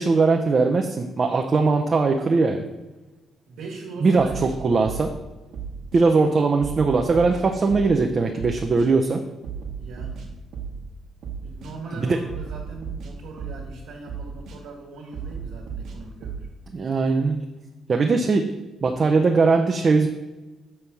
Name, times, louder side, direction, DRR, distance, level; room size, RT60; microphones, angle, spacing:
voice 1, 0.0-2.6 4.0-4.3 4.6-5.1 5.9-9.2 12.0-12.2 16.7-17.4 17.9-18.5 18.8-20.1, right 4 dB, 40° right, 3 dB, 0.6 m, -20 dB
voice 2, 3.5-4.5 9.8-10.3 11.4-16.5 18.0-18.4, right 3 dB, 90° right, -4 dB, 1.4 m, -40 dB
sound 1, 4.2-5.2 5.5-6.0 6.6-8.1 8.4-8.9 9.4-10.9 11.2-11.7 12.3-13.7 14.1-14.6 15.1-16.5, right 6 dB, 70° right, 1.2 m, -35 dB
7.0 x 3.3 x 5.9 m, 1.1 s
cardioid pair, 90°, 0 cm